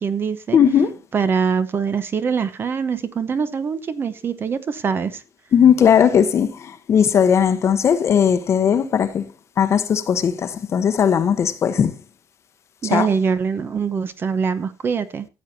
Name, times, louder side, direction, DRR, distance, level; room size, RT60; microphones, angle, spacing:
voice 1, 0.0-0.6 1.1-5.2 12.8-15.3, right 6 dB, 30° right, 0.8 m, -23 dB
voice 2, 0.5-1.0 5.5-9.3 9.6-11.9 12.8-13.1, left 8 dB, 40° left, 1.0 m, -17 dB
15.5 x 8.5 x 2.7 m
cardioid pair, 160°, 8 cm